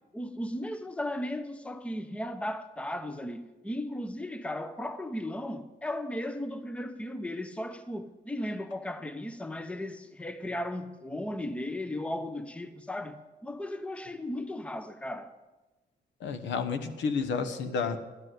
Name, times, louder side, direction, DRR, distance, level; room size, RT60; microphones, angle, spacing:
voice 1, 0.1-13.2 13.4-15.3, left 1 dB, 5° left, 0.7 m, -36 dB
voice 2, 16.2-18.0, left 5 dB, 90° left, 1.1 m, -30 dB
11.5 x 8.0 x 7.7 m
cardioid pair, 135°, 19 cm